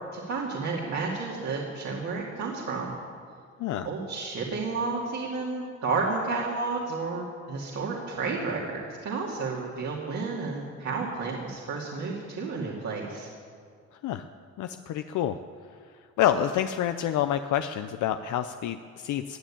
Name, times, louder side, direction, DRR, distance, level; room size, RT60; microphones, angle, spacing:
voice 1, 0.1-2.9 3.8-13.3, right 4 dB, 65° right, -3 dB, 2.6 m, -31 dB
voice 2, 14.6-15.4 16.2-19.4, left 10 dB, 80° left, 9 dB, 0.6 m, -28 dB
17.5 x 9.3 x 8.7 m, 2.2 s
cardioid pair, 90°, 30 cm